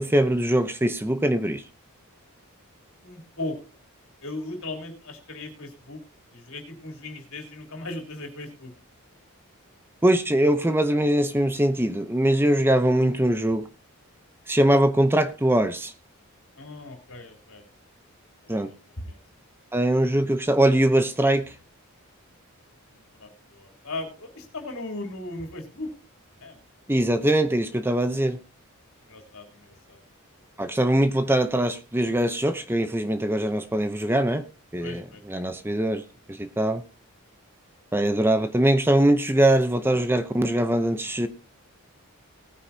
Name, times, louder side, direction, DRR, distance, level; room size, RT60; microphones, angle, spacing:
voice 1, 0.0-1.6 10.0-13.6 14.5-15.9 18.5-18.7 19.7-21.5 26.9-28.4 30.6-34.4 34.7-35.0 35.3-36.0 36.3-36.8 37.9-41.3, right 1 dB, 10° right, 9 dB, 0.7 m, -22 dB
voice 2, 3.0-3.6 4.2-6.0 6.3-8.7 16.6-17.6 18.4-18.6 19.0-19.2 22.9-25.9 26.4-26.6 29.0-30.0 34.8-35.4, left 2 dB, 70° left, 3 dB, 3.4 m, -37 dB
19.0 x 9.6 x 2.8 m, 0.30 s
head